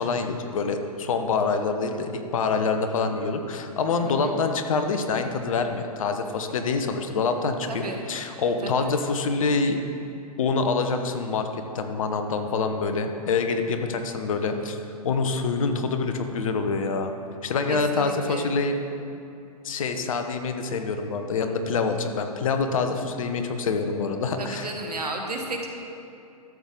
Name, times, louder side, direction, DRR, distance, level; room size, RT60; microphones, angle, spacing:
voice 1, 0.0-7.8 8.1-9.8 10.4-14.8 15.0-17.1 17.4-18.8 19.6-24.7, left 4 dB, 60° left, 7 dB, 1.0 m, -26 dB
voice 2, 4.0-4.3 7.7-8.0 8.6-8.9 17.7-18.6 24.4-25.7, right 3 dB, 80° right, 2 dB, 1.4 m, -33 dB
13.0 x 7.2 x 3.8 m, 2.6 s
figure-of-eight pair, 120°, 20 cm